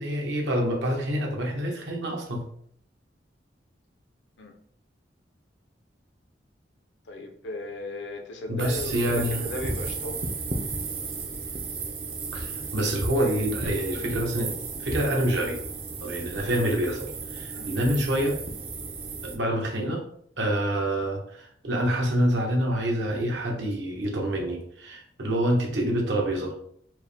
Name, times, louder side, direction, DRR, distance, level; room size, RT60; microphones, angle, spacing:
voice 1, 0.0-2.4 8.5-9.4 12.3-15.6 16.0-18.4 19.2-20.0 20.4-26.6, right 1 dB, 75° right, 0 dB, 1.1 m, -27 dB
voice 2, 7.1-10.3 17.5-17.7, left 1 dB, 80° left, 3 dB, 0.7 m, -36 dB
sound 1, 8.6-19.4, right 3 dB, 35° right, 0.5 m, -34 dB
4.5 x 2.2 x 3.4 m, 0.64 s
head